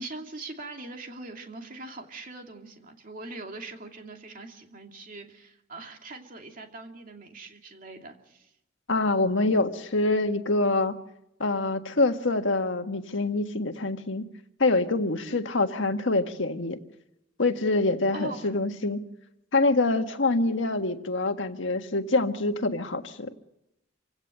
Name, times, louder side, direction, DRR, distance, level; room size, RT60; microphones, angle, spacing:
voice 1, 0.0-8.5 15.3-15.4 18.1-18.5, right 2 dB, 45° right, 3 dB, 2.7 m, -41 dB
voice 2, 8.9-10.9 11.4-14.3 14.6-16.8 17.4-19.0 19.5-23.3, left 2 dB, 75° left, 6 dB, 1.6 m, -25 dB
27.0 x 17.0 x 6.7 m, 0.86 s
head